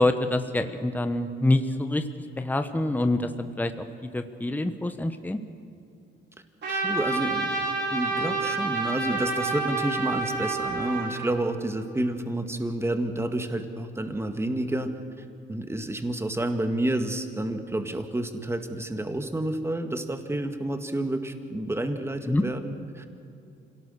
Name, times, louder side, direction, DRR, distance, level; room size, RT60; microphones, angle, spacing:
voice 1, 0.0-2.0 2.4-5.4 22.3-22.4, left 1 dB, 10° left, 8 dB, 1.1 m, -26 dB
Trumpet, 6.6-11.3, right 3 dB, 60° right, 5.5 m, -28 dB
voice 2, 6.7-7.6 7.9-15.0 15.5-23.1, right 1 dB, 15° right, 6 dB, 1.9 m, -29 dB
26.5 x 18.0 x 6.7 m, 2.7 s
cardioid pair, 90°, 20 cm